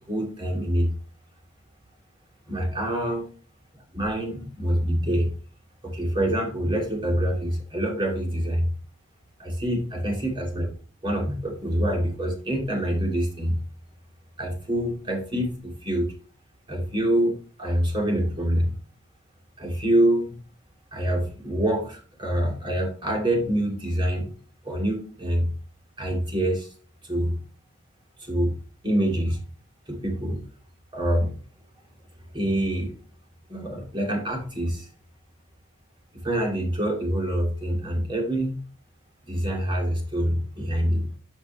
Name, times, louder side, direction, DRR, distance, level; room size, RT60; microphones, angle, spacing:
voice 1, 0.1-0.9 2.5-3.3 3.9-5.3 5.8-8.7 9.4-10.7 11.0-13.6 14.4-16.1 16.7-18.7 19.6-20.4 20.9-24.3 24.6-25.5 26.0-26.7 27.0-27.4 28.2-28.6 28.8-29.4 29.9-30.4 30.9-31.4 32.3-32.9 33.5-34.9 36.1-38.6 39.2-41.1, right 1 dB, 25° right, 1 dB, 2.6 m, -26 dB
10.0 x 5.5 x 3.1 m, 0.37 s
head